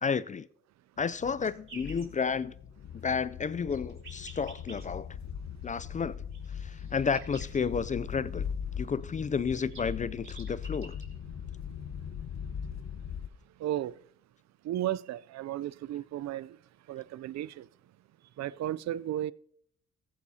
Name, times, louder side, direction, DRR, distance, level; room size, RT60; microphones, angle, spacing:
voice 1, 0.0-0.5 1.0-2.5 2.9-5.1 5.6-6.2 6.5-8.5 8.8-11.0, left 6 dB, 25° left, 0.4 m, -31 dB
sound 1, 1.0-13.3, left 7 dB, 65° left, 1.1 m, -40 dB
sound 2, 1.4-2.1 3.5-4.9 6.3-7.7 9.0-9.1 9.3-11.1, right 4 dB, 45° right, 3.6 m, -50 dB
voice 2, 13.6-14.0 14.6-16.6 16.9-17.7 18.4-19.3, right 12 dB, 60° right, 0.5 m, -34 dB
15.0 x 14.5 x 2.8 m
cardioid pair, 90°, 30 cm